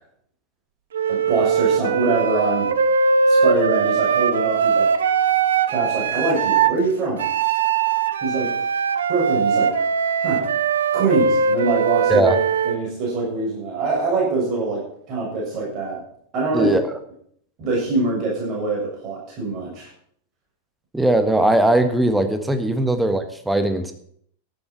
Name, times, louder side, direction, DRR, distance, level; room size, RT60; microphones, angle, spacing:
Wind instrument woodwind instrument, 0.9-6.8 7.2-12.8, right 6 dB, 65° right, 0.8 m, -20 dB
voice 1, 1.1-2.7 3.3-4.9 5.7-7.2 8.2-8.5 9.1-9.7 10.2-10.5 10.9-12.3 12.6-14.8 15.1-16.0 16.3-16.7 17.6-19.9 22.7-22.8, right 3 dB, 40° right, -3 dB, 6.8 m, -24 dB
voice 2, 16.5-16.9 20.9-23.9, right 1 dB, 5° right, 8 dB, 1.5 m, -19 dB
13.5 x 11.5 x 4.6 m, 0.64 s
figure-of-eight pair, 90°, 0 cm